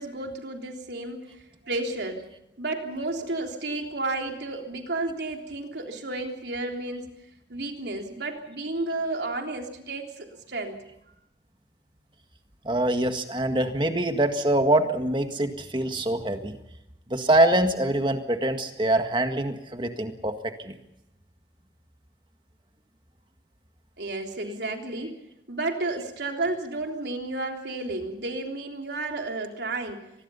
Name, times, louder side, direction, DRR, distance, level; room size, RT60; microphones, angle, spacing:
voice 1, 0.0-2.3 2.6-7.1 7.5-10.8 24.0-25.2 25.5-30.1, right 2 dB, 80° right, 2 dB, 3.5 m, -32 dB
voice 2, 12.6-16.6 17.1-20.8, right 1 dB, 25° right, 6 dB, 1.8 m, -24 dB
25.0 x 20.5 x 5.7 m, 0.85 s
head